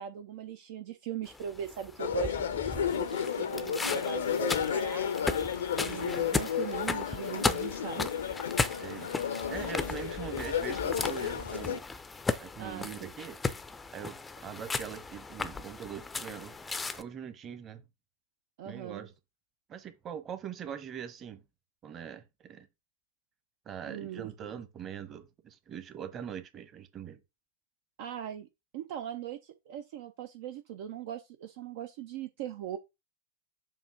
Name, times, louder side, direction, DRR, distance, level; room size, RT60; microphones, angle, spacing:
voice 1, 0.0-5.1 5.8-8.1 8.6-9.1 12.6-13.1 18.6-19.0 23.9-24.3 28.0-28.5 28.7-32.8, right 10 dB, 50° right, 0.7 m, -40 dB
sound 1, 1.3-17.0, left 4 dB, 10° left, 0.6 m, -36 dB
sound 2, 2.0-11.8, left 8 dB, 65° left, 0.7 m, -32 dB
voice 2, 8.8-11.8 12.4-13.4 13.9-16.5 16.9-17.8 18.6-19.1 19.7-21.4 21.8-22.7 23.6-27.2, right 8 dB, 30° right, 1.2 m, -42 dB
7.2 x 2.9 x 5.7 m
figure-of-eight pair, 90°, 0 cm